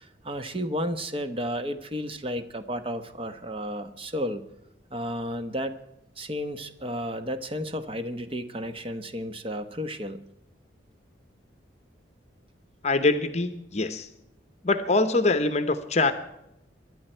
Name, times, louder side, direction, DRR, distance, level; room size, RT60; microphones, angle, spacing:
voice 1, 0.0-4.4 4.9-5.8 6.2-10.2, equal, 30° right, 9 dB, 1.0 m, -32 dB
voice 2, 12.8-14.1 14.6-16.1, left 3 dB, 35° left, 10 dB, 0.8 m, -24 dB
25.0 x 11.0 x 4.4 m, 0.85 s
head